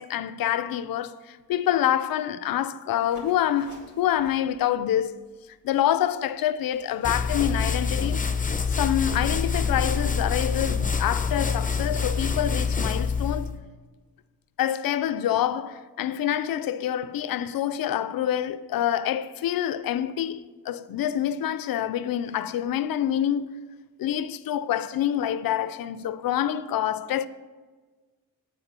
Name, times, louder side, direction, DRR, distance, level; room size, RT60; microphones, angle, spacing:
voice 1, 0.0-5.2 5.6-8.2 8.7-13.5 14.6-23.6 24.0-27.3, left 11 dB, 75° left, 0.5 m, -26 dB
sound 1, 3.0-8.5, right 1 dB, 60° right, 2.8 m, -52 dB
sound 2, 7.0-13.6, left 5 dB, 25° left, 0.6 m, -26 dB
8.8 x 4.5 x 6.7 m
cardioid pair, 75°, 35 cm